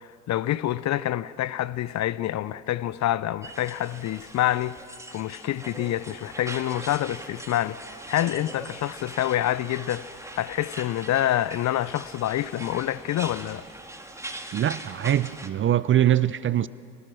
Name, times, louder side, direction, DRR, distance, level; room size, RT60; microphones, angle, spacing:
voice 1, 0.0-4.8 5.1-13.6, left 13 dB, 40° left, 0.6 m, -27 dB
sound 1, 3.4-15.5, right 1 dB, 5° right, 2.0 m, -41 dB
voice 2, 14.5-16.7, right 11 dB, 30° right, 0.5 m, -23 dB
26.0 x 19.5 x 6.3 m
figure-of-eight pair, 55°, 44 cm